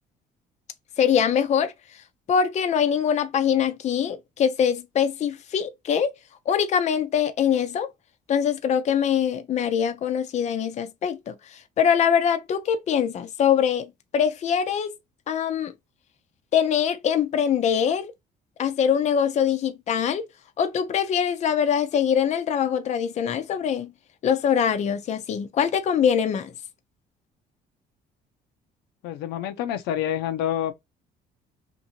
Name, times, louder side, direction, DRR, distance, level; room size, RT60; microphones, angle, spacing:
voice 1, 1.0-1.7 2.3-6.1 6.5-7.9 8.3-15.0 15.3-15.7 16.5-18.1 18.6-20.3 20.6-23.9 24.2-26.5, left 8 dB, 45° left, 0.5 m, -23 dB
voice 2, 29.0-30.7, left 11 dB, 90° left, 0.6 m, -27 dB
2.7 x 2.6 x 2.7 m
cardioid pair, 110°, 17 cm